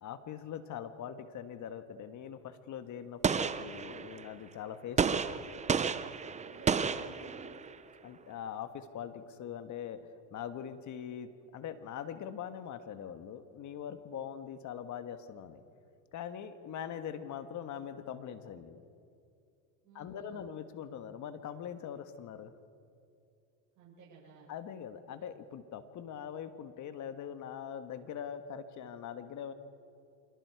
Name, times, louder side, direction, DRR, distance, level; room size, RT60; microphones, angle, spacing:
voice 1, 0.0-5.5 8.0-10.0 10.3-15.6 16.1-18.8 19.9-22.5 24.5-29.5, left 8 dB, 45° left, 9 dB, 1.5 m, -42 dB
Gunshot gunfire, 3.2-4.3 5.0-7.8, right 6 dB, 15° right, 0.7 m, -32 dB
voice 2, 6.3-7.5 19.8-20.5 23.8-24.5, right 4 dB, 50° right, -6 dB, 7.3 m, -54 dB
26.5 x 21.0 x 4.8 m, 2.5 s
supercardioid pair, 95°, 41 cm